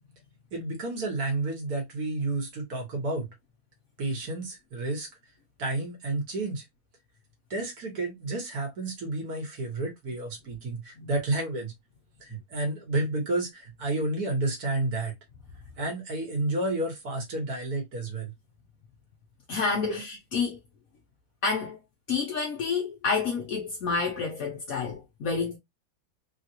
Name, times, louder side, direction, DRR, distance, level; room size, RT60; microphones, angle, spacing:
voice 1, 0.5-3.3 4.0-5.1 5.6-6.6 7.5-11.7 12.2-15.1 15.8-18.3 19.9-20.0, right 2 dB, 70° right, 1.9 m, -31 dB
voice 2, 19.5-20.6 21.4-21.8 22.1-25.6, left 5 dB, 65° left, 1.1 m, -29 dB
3.7 x 2.4 x 2.8 m
omnidirectional pair, 1.7 m